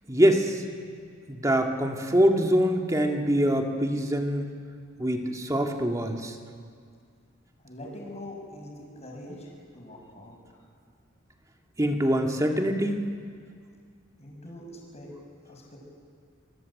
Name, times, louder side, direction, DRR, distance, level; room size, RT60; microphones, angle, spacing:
voice 1, 0.1-0.6 1.3-4.5 5.0-6.3 11.8-13.0, equal, 15° right, 3 dB, 1.9 m, -24 dB
voice 2, 7.6-10.4 14.2-15.1 15.4-15.8, left 1 dB, 35° left, 0 dB, 6.4 m, -43 dB
26.5 x 21.5 x 8.4 m, 2.1 s
head